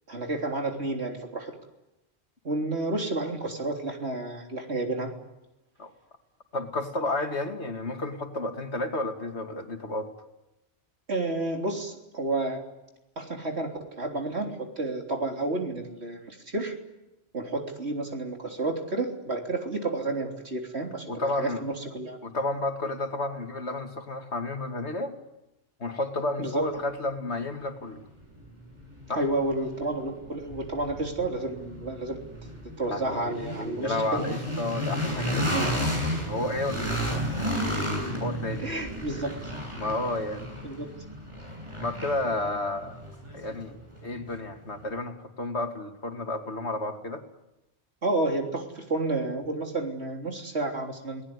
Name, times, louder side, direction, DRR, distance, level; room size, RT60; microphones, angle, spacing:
voice 1, 0.1-1.5 2.4-5.1 11.1-12.6 13.2-16.7 17.3-22.2 26.4-26.6 29.1-32.2 32.8-34.2 38.6-39.5 40.6-40.9 48.0-51.2, right 2 dB, 70° right, 2 dB, 3.8 m, -30 dB
voice 2, 6.5-10.1 21.1-21.6 22.2-25.2 25.8-28.0 29.1-29.2 32.8-37.2 38.2-38.8 39.8-40.5 41.8-42.9 43.3-43.7 44.0-47.2, left 2 dB, 75° left, 5 dB, 2.7 m, -31 dB
sound 1, 27.8-27.9 28.4-44.3, equal, 25° right, 8.1 m, -33 dB
29.5 x 19.0 x 9.8 m, 0.97 s
omnidirectional pair, 1.2 m